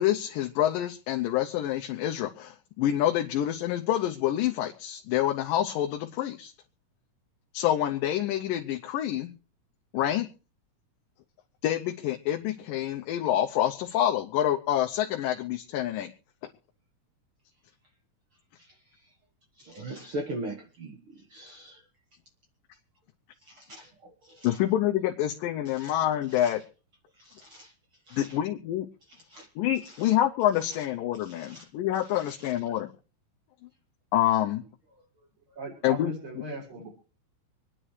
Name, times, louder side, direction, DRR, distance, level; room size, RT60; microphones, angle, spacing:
voice 1, 0.0-6.5 7.5-9.3 9.9-10.3 11.6-16.1 24.4-26.6 28.1-28.9 29.6-32.9 34.1-34.6 35.8-36.1, left 12 dB, 85° left, 3 dB, 2.5 m, -27 dB
voice 2, 19.6-21.8 23.4-24.6 25.7-25.9 26.3-26.6 27.2-27.7 28.1-28.4 29.3-29.5 30.0-30.1 30.7-30.8 31.2-31.7 32.1-32.5, right 1 dB, 50° right, 2 dB, 1.7 m, -41 dB
voice 3, 35.5-36.9, right 1 dB, 35° right, -4 dB, 6.5 m, -37 dB
26.0 x 10.0 x 3.2 m, 0.36 s
omnidirectional pair, 3.9 m